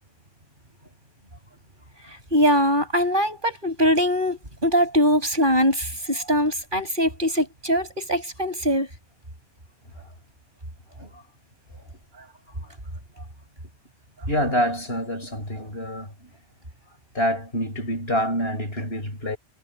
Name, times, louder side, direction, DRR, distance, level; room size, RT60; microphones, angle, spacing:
voice 1, 2.3-8.9, equal, 40° right, 6.4 m, -22 dB
voice 2, 14.3-16.3 17.1-19.4, equal, 55° left, 5.7 m, -26 dB
omnidirectional pair, 1.2 m